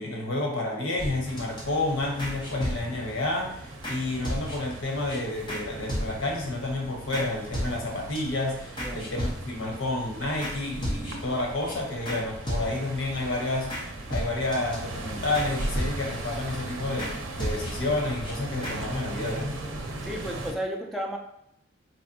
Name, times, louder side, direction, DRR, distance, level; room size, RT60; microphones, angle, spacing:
voice 1, 0.0-13.7 14.1-19.6, left 2 dB, 85° left, 1 dB, 0.9 m, -30 dB
sound 1, 1.0-1.6 2.2-3.1 3.8-4.0 4.2-4.8 5.1-5.2 5.5-5.6 5.9-6.4 7.1-7.3 7.5-8.2 8.8-9.7 10.4-10.6 10.8-11.3 11.7-11.8 12.1-12.2 12.5-13.0 13.7-13.8 14.1-14.8 15.3-16.3 17.0-17.1 17.4-17.9 18.2-18.3 18.6-18.8, equal, 25° left, 0.9 m, -34 dB
sound 2, 1.2-20.5, right 2 dB, 85° right, 0.6 m, -38 dB
voice 2, 20.0-21.2, equal, ahead, -1 dB, 0.4 m, -33 dB
4.1 x 2.7 x 2.6 m, 0.75 s
head